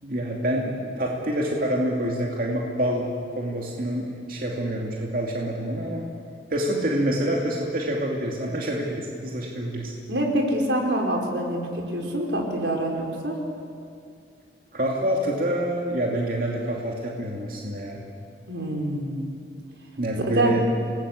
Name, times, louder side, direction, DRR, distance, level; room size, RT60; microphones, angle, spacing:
voice 1, 0.0-6.1 6.5-9.9 14.7-18.0 20.0-20.6, right 1 dB, 50° right, -1 dB, 2.6 m, -27 dB
voice 2, 10.1-13.4 18.5-19.3 20.3-20.5, right 1 dB, 85° right, 1 dB, 4.6 m, -25 dB
28.0 x 19.5 x 8.4 m, 2.3 s
head